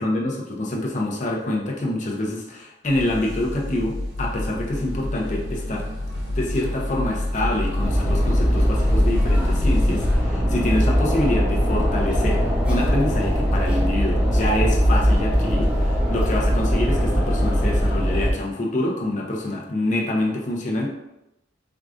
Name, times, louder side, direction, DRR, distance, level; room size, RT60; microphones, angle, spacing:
voice 1, 0.0-5.9 6.3-20.9, left 1 dB, 40° left, -1 dB, 0.7 m, -26 dB
sound 1, 2.9-10.2, left 1 dB, 80° right, 0.7 m, -27 dB
sound 2, 7.8-18.3, equal, 5° right, 0.5 m, -21 dB
4.6 x 2.4 x 2.4 m, 0.90 s
head